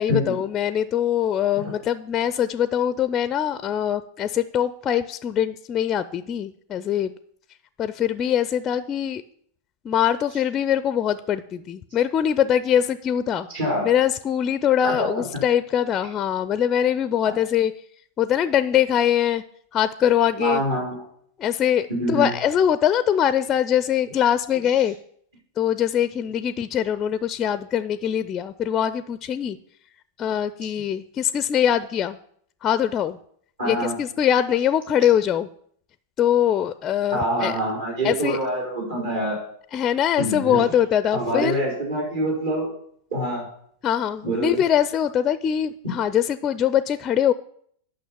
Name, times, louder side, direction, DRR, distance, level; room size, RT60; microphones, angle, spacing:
voice 1, 0.0-7.1 7.8-9.2 9.8-13.5 13.8-17.7 18.2-19.4 19.7-20.6 21.4-25.0 25.6-29.6 30.2-32.2 32.6-33.2 33.6-35.5 36.2-37.5 38.0-38.4 39.7-41.6 43.8-47.3, left 9 dB, 25° left, 14 dB, 0.4 m, -22 dB
voice 2, 13.5-13.9 14.8-15.2 17.2-17.3 20.4-21.0 21.9-22.3 33.6-34.0 37.1-39.4 40.2-40.6 41.1-42.7 43.1-43.4 44.2-44.6, right 1 dB, 65° right, -3 dB, 4.5 m, -25 dB
9.1 x 6.0 x 7.1 m, 0.65 s
figure-of-eight pair, 90°, 0 cm